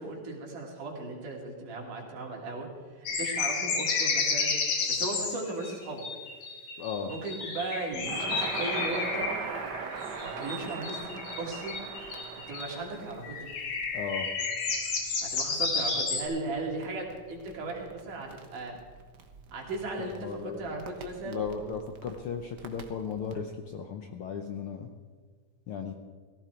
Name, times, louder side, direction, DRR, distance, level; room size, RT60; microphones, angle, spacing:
voice 1, 0.0-2.7 3.0-4.5 4.9-6.0 7.0-9.3 10.2-11.8 12.5-13.5 15.2-18.8 19.5-21.5, right 2 dB, 80° right, -1 dB, 4.3 m, -37 dB
sound 1, 3.0-12.8 13.2-16.2, left 4 dB, 85° left, 3.7 m, -32 dB
voice 2, 6.8-7.1 13.9-14.3 20.0-20.7 21.3-24.9 25.7-25.9, left 6 dB, 70° left, 4 dB, 1.3 m, -36 dB
Crackle, 7.9-23.4, right 5 dB, 60° right, 1.1 m, -42 dB
17.5 x 15.0 x 4.5 m, 1.5 s
omnidirectional pair, 3.6 m